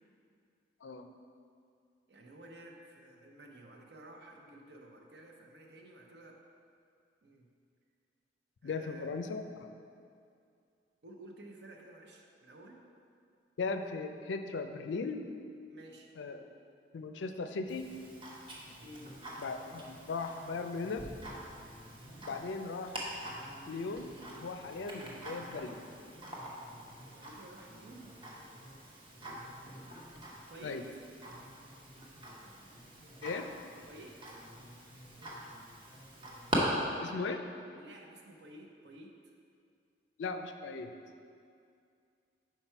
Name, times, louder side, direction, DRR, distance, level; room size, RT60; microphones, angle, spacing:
voice 1, 2.1-6.4 7.2-7.5 8.6-9.1 11.0-12.8 15.7-16.1 18.8-19.1 27.1-28.2 30.5-30.8 33.9-34.4 37.7-39.3, right 1 dB, 60° right, 1 dB, 0.7 m, -53 dB
voice 2, 8.6-9.7 13.6-15.3 16.2-16.4 16.9-17.8 19.4-21.1 22.3-23.0 23.7-24.1 24.4-25.8 30.6-30.8 33.2-33.5 37.0-37.4 40.2-40.9, left 4 dB, 75° left, 7 dB, 0.4 m, -38 dB
Tick-tock, 17.7-36.6, right 1 dB, 30° right, 0.9 m, -45 dB
5.8 x 4.6 x 4.4 m, 2.4 s
head